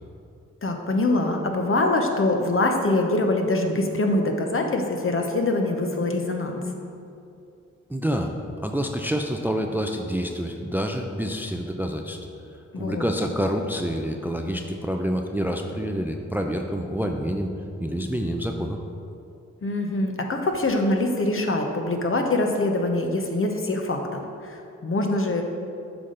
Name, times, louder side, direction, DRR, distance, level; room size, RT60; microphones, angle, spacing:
voice 1, 0.6-6.6 12.7-13.1 19.6-25.4, left 2 dB, 45° left, 3 dB, 0.9 m, -24 dB
voice 2, 7.9-8.3 8.6-12.2 12.8-17.5 17.8-18.8, equal, 5° right, 3 dB, 0.5 m, -27 dB
8.0 x 5.2 x 3.9 m, 2.6 s
cardioid pair, 50°, 30 cm